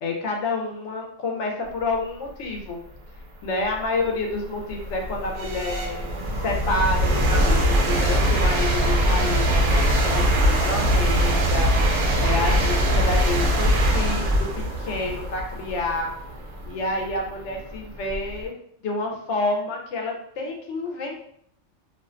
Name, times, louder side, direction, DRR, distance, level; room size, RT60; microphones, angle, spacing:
voice 1, 0.0-2.8 3.4-16.1 16.7-18.5 18.8-21.2, left 2 dB, 75° left, 2 dB, 0.9 m, -29 dB
sound 1, 3.0-3.1 3.7-18.4, equal, 80° right, 0.9 m, -22 dB
2.4 x 2.2 x 2.4 m, 0.68 s
omnidirectional pair, 1.2 m